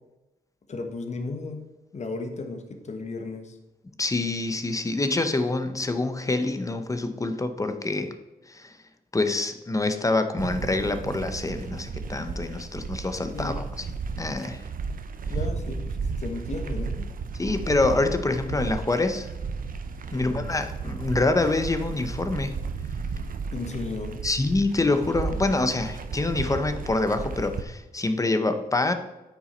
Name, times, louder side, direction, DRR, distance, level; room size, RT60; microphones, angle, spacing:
voice 1, 0.7-1.6 1.9-3.6 13.3-13.7 15.3-15.9 16.2-17.1 20.1-20.5 23.5-24.2, left 3 dB, 50° left, 6 dB, 1.2 m, -34 dB
voice 2, 4.0-8.2 8.5-8.8 9.1-13.6 14.2-14.6 17.4-19.3 20.1-22.6 24.2-28.9, left 2 dB, 20° left, 9 dB, 0.7 m, -26 dB
sound 1, 10.4-27.6, right 4 dB, 65° right, 0.7 m, -34 dB
9.0 x 6.0 x 4.3 m, 1.0 s
wide cardioid pair, 110°, 15 cm